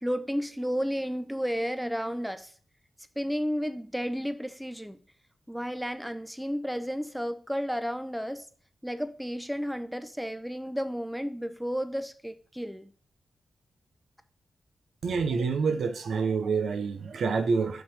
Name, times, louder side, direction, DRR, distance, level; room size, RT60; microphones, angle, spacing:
voice 1, 0.0-2.5 3.2-5.0 5.5-8.5 8.8-12.9, equal, ahead, 0.7 m, -32 dB
voice 2, 15.0-17.8, right 5 dB, 80° right, 0.7 m, -27 dB
5.7 x 3.8 x 5.0 m
cardioid pair, 50°, 0 cm